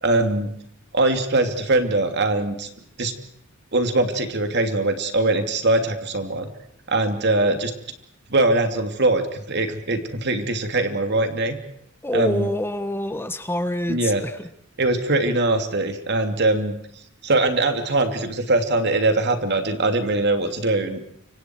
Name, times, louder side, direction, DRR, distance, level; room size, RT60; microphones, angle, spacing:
voice 1, 0.0-0.5 0.9-2.7 3.0-3.1 3.7-6.5 6.9-7.7 8.3-11.6 12.1-12.5 13.9-14.2 14.8-16.8 17.2-21.0, right 2 dB, 55° right, 6 dB, 2.8 m, -22 dB
voice 2, 12.0-14.5, left 1 dB, 10° left, 10 dB, 1.1 m, -26 dB
29.0 x 25.5 x 4.6 m, 0.72 s
head